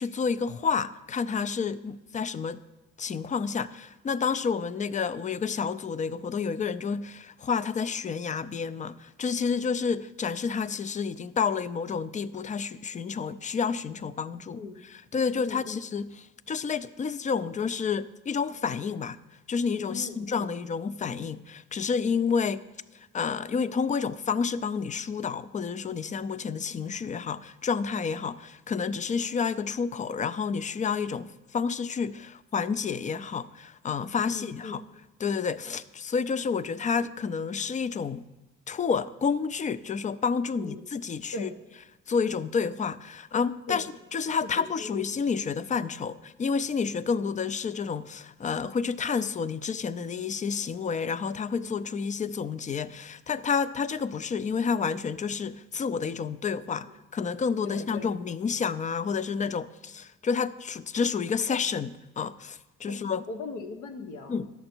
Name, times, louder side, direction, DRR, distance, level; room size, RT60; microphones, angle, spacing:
voice 1, 0.0-2.6 3.0-14.6 14.9-16.1 16.5-19.2 19.5-22.6 22.9-34.8 35.2-38.2 38.7-41.5 42.1-63.2 64.3-64.5, left 6 dB, 25° left, 0.3 m, -30 dB
voice 2, 15.4-15.8 19.9-20.5 34.3-34.7 40.6-40.8 41.3-41.5 43.7-43.9 44.4-45.0 51.9-52.0 56.8-56.9 57.6-58.1 62.9-63.0 63.3-64.4, left 3 dB, 80° left, 1.1 m, -39 dB
11.0 x 6.9 x 4.4 m
cardioid pair, 90°, 30 cm